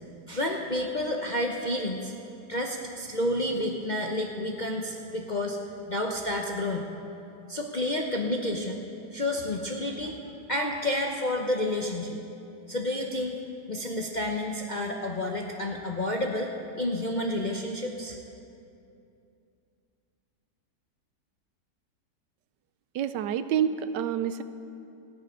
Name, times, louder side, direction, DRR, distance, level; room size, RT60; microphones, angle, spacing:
voice 1, 0.3-2.1 2.5-5.6 5.9-6.9 7.5-8.8 9.1-10.2 10.5-12.2 12.7-13.4 13.7-18.2, left 1 dB, 45° left, 1 dB, 0.6 m, -30 dB
voice 2, 22.9-24.4, right 9 dB, 80° right, 12 dB, 1.2 m, -28 dB
14.5 x 6.8 x 9.6 m, 2.6 s
omnidirectional pair, 1.9 m